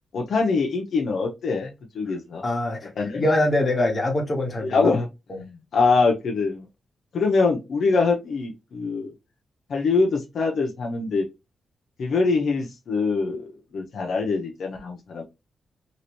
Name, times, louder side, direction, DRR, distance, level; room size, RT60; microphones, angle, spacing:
voice 1, 0.1-2.4 3.0-3.2 4.6-5.1 5.4-6.7 7.1-9.1 9.7-11.3 12.0-13.5 13.7-15.2, left 4 dB, 75° left, 0.8 m, -23 dB
voice 2, 2.4-4.9 5.3-5.4, left 1 dB, 35° left, 1.3 m, -24 dB
3.0 x 3.0 x 2.9 m
cardioid pair, 95°, 0 cm